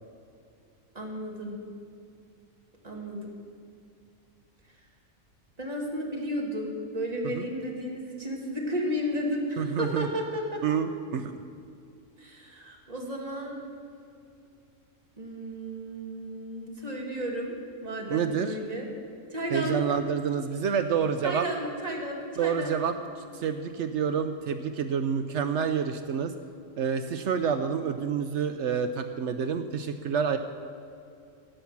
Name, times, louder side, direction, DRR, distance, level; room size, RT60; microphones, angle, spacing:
voice 1, 1.0-1.6 2.8-3.3 5.6-10.6 12.2-13.6 15.2-17.6 17.8-18.9 19.3-20.0 21.2-22.8, equal, 30° right, -1 dB, 2.0 m, -33 dB
voice 2, 9.6-10.1 10.6-11.4 18.1-18.6 19.5-21.5 22.4-26.3 26.8-30.4, right 7 dB, 65° right, 9 dB, 0.8 m, -28 dB
17.0 x 5.9 x 7.1 m, 2.5 s
omnidirectional pair, 1.4 m